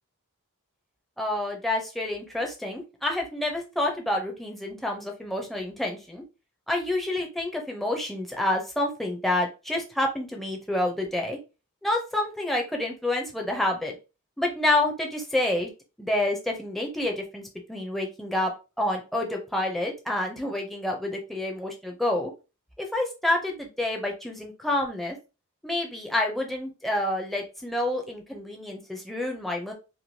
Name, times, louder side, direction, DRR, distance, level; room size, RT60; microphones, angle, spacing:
voice 1, 1.2-6.2 6.7-11.4 11.8-14.0 14.4-15.7 16.0-17.4 17.7-18.5 18.8-22.3 22.8-25.2 25.6-29.7, left 1 dB, ahead, 0 dB, 0.4 m, -28 dB
3.0 x 2.3 x 2.6 m, 0.30 s
head